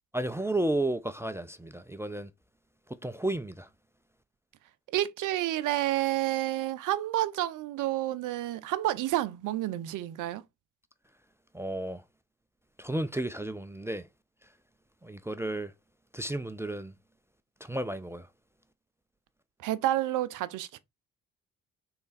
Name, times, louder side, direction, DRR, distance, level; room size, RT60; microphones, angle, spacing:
voice 1, 0.1-2.3 3.0-3.7 11.5-12.0 12.8-14.0 15.0-15.7 16.1-16.9 17.6-18.3, right 1 dB, 10° right, 0.3 m, -32 dB
voice 2, 4.9-10.4 19.6-20.8, right 14 dB, 55° right, 0.5 m, -29 dB
3.2 x 3.1 x 3.9 m
hypercardioid pair, 40°, 37 cm